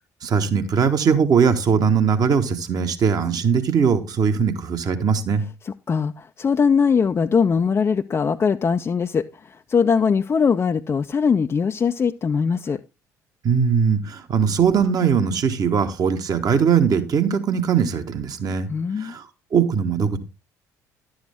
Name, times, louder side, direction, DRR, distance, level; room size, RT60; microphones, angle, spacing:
voice 1, 0.2-5.4 13.4-18.7 19.0-19.3 19.5-20.2, right 6 dB, 45° right, 1.4 m, -20 dB
voice 2, 5.6-12.8 18.7-19.2, left 6 dB, 30° left, 0.5 m, -21 dB
11.5 x 7.9 x 3.5 m
figure-of-eight pair, 50°, 9 cm